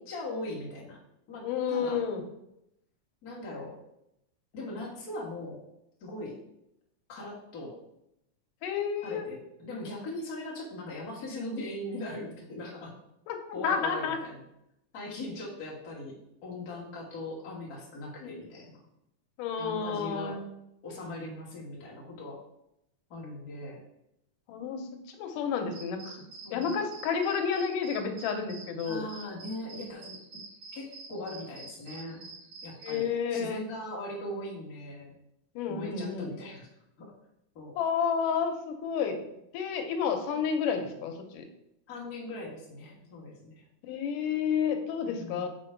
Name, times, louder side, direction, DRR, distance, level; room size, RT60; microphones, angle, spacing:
voice 1, 0.0-1.0 1.3-2.0 3.2-3.8 4.5-5.6 6.0-6.4 7.1-7.8 9.0-12.9 13.5-14.4 14.9-18.8 19.6-20.4 20.8-22.4 23.1-23.8 26.4-26.8 28.9-30.2 30.7-32.4 32.6-35.2 35.7-36.7 37.0-37.1 37.5-37.8 41.9-43.6 45.0-45.5, left 1 dB, 40° left, -4 dB, 1.6 m, -40 dB
voice 2, 1.4-2.2 8.6-9.3 13.3-14.2 18.2-18.3 19.4-20.4 24.5-24.8 25.2-26.3 26.5-29.1 32.8-33.6 35.6-36.3 37.8-39.2 39.5-41.4 43.8-45.5, left 6 dB, 85° left, 5 dB, 2.3 m, -30 dB
sound 1, 25.7-33.0, right 4 dB, 70° right, 2.3 m, -47 dB
6.1 x 4.3 x 4.5 m, 0.82 s
omnidirectional pair, 3.6 m